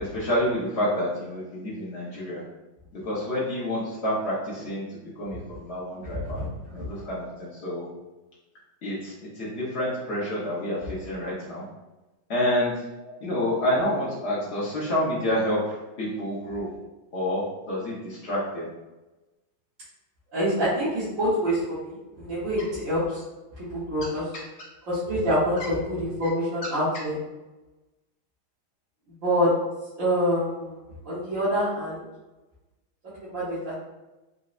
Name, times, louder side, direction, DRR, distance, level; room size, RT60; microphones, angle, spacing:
voice 1, 0.0-2.4 2.9-6.4 6.7-7.9 8.8-11.6 12.3-12.9 13.2-16.7 17.1-18.7 24.0-24.1 24.6-24.7 25.6-25.7 26.6-26.7, left 1 dB, 70° left, -7 dB, 0.6 m, -28 dB
voice 2, 6.1-6.5 20.3-23.2 23.6-24.2 24.9-27.2 29.2-29.5 30.0-30.8 31.0-32.0 33.2-33.7, equal, 50° right, -10 dB, 1.1 m, -26 dB
3.9 x 2.0 x 2.4 m, 1.1 s
omnidirectional pair, 2.2 m